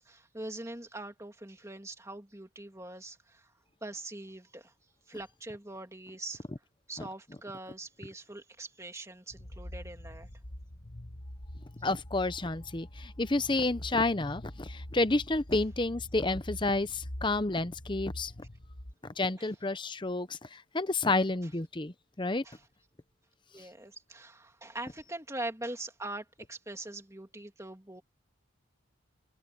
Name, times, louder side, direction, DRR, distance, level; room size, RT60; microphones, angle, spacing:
voice 1, 0.0-3.5 3.8-4.7 5.1-6.4 6.9-10.3 19.4-19.5 22.4-22.6 23.5-28.0, right 2 dB, 15° right, 2.7 m, -42 dB
sound 1, 9.3-18.9, left 1 dB, 40° left, 1.7 m, -44 dB
voice 2, 11.8-18.3 19.0-22.4, left 2 dB, 25° left, 0.8 m, -30 dB
head